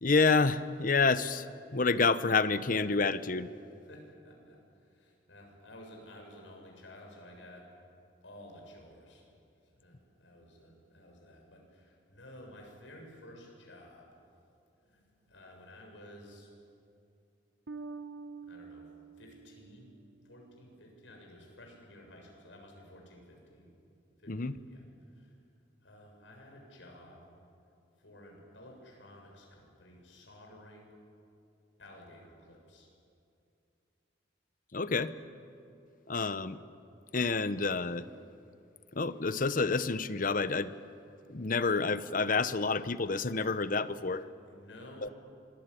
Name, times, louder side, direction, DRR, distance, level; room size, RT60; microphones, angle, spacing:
voice 1, 0.0-3.5 24.3-24.5 34.7-35.1 36.1-36.6 37.1-38.1 38.9-40.7 41.3-44.2 45.0-45.1, left 4 dB, 45° left, 14 dB, 0.9 m, -28 dB
voice 2, 3.9-7.7 8.2-9.3 9.6-14.1 14.8-16.5 18.4-18.9 19.2-19.9 20.2-23.7 24.2-25.4 25.8-27.2 28.0-30.9 31.8-32.9 44.4-45.1, left 1 dB, 90° left, 1 dB, 7.3 m, -53 dB
Bass guitar, 17.7-20.7, right 4 dB, 80° right, 1.0 m, -47 dB
26.0 x 20.5 x 10.0 m, 2.6 s
head